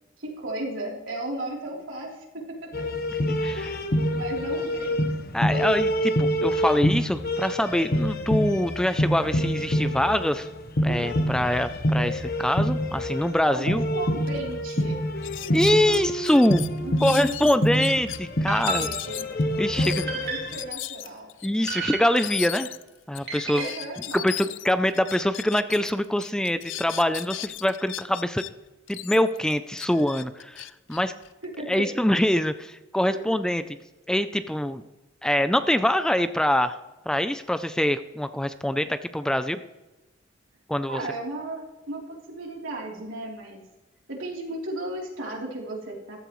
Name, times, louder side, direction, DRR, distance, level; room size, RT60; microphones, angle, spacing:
voice 1, 0.2-2.9 4.1-5.0 13.5-15.0 16.8-17.8 18.6-19.3 19.8-21.3 23.5-24.3 26.6-26.7 31.4-31.8 33.1-33.3 40.8-43.6 44.1-46.2, right 1 dB, 80° right, -2 dB, 3.4 m, -35 dB
sound 1, 2.7-20.6, equal, 50° left, 1.1 m, -27 dB
voice 2, 3.3-3.8 5.3-10.5 10.8-13.8 15.5-16.6 17.0-18.9 19.6-20.0 21.4-22.7 23.1-23.7 24.1-28.4 28.9-31.1 31.7-33.8 34.1-34.8 35.2-36.8 37.1-39.6 40.7-41.0, left 1 dB, 5° left, 11 dB, 0.4 m, -24 dB
sound 2, 14.3-14.4 14.7-14.8 15.2-18.2 18.6-25.9 26.2-28.5 28.9-31.8, left 15 dB, 65° left, 0.5 m, -37 dB
sound 3, 18.5-19.4 20.1-20.7 21.7-22.5 23.3-23.9, right 4 dB, 55° right, 3.1 m, -33 dB
15.0 x 13.0 x 3.1 m, 1.1 s
head